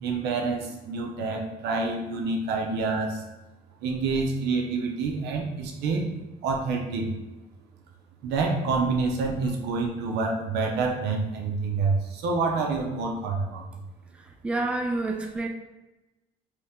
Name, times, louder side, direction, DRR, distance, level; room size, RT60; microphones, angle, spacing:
voice 1, 0.0-3.2 3.8-6.1 6.4-7.1 8.2-13.7, right 4 dB, 80° right, 1 dB, 0.7 m, -27 dB
voice 2, 14.4-15.5, right 2 dB, 5° right, 4 dB, 0.3 m, -28 dB
2.9 x 2.8 x 3.4 m, 1.1 s
cardioid pair, 110°, 17 cm